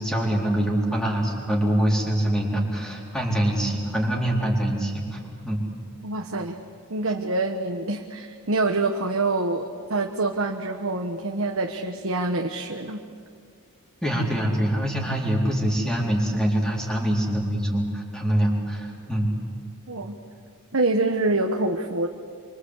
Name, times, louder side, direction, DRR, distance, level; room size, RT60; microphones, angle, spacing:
voice 1, 0.0-5.2 5.4-5.6 14.0-19.3, right 1 dB, 5° left, -2 dB, 4.1 m, -24 dB
voice 2, 6.0-6.6 6.9-13.0 19.9-20.2 20.7-22.1, right 2 dB, 65° right, 3 dB, 1.3 m, -26 dB
26.5 x 24.5 x 8.3 m, 2.3 s
head